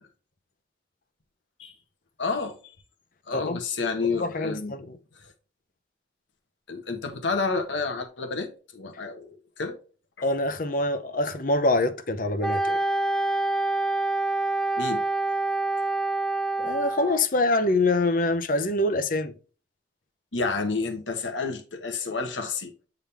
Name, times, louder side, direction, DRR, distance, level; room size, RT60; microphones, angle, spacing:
voice 1, 2.2-2.7 3.3-4.7 5.1-5.3 6.7-9.8 14.8-15.0 20.3-22.7, left 4 dB, 90° left, 1.3 m, -30 dB
voice 2, 4.2-5.0 10.2-12.8 16.6-19.3, left 2 dB, 45° left, 0.7 m, -25 dB
Wind instrument woodwind instrument, 12.4-17.2, right 2 dB, 5° left, 0.4 m, -26 dB
8.7 x 3.8 x 3.4 m
head